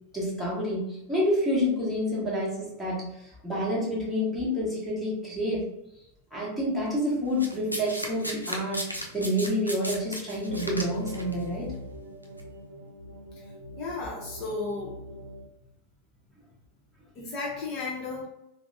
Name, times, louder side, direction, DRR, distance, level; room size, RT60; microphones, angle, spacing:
voice 1, 0.1-5.7 6.3-11.7, equal, ahead, -6 dB, 1.1 m, -28 dB
Domestic sounds home sounds, 7.4-11.3 12.2-12.4, equal, 90° left, 0.4 m, -35 dB
sound 1, 10.5-15.5, right 1 dB, 80° right, 0.5 m, -42 dB
voice 2, 13.3-15.0 17.1-18.3, left 3 dB, 40° left, -3 dB, 0.7 m, -34 dB
3.4 x 2.0 x 2.6 m, 0.84 s
figure-of-eight pair, 90°, 0 cm